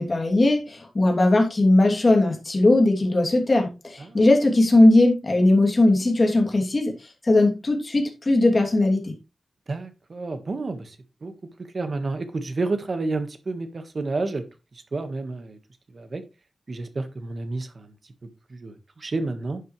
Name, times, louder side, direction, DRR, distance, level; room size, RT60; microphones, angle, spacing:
voice 1, 0.0-6.9 7.2-9.1, left 2 dB, 30° left, 2.9 m, -19 dB
voice 2, 9.7-11.0 11.2-11.3 11.7-14.4 14.7-15.6 15.9-16.2 16.7-18.1 18.5-19.6, right 3 dB, 40° right, 1.6 m, -30 dB
11.5 x 7.9 x 3.3 m
wide cardioid pair, 175°, 0 cm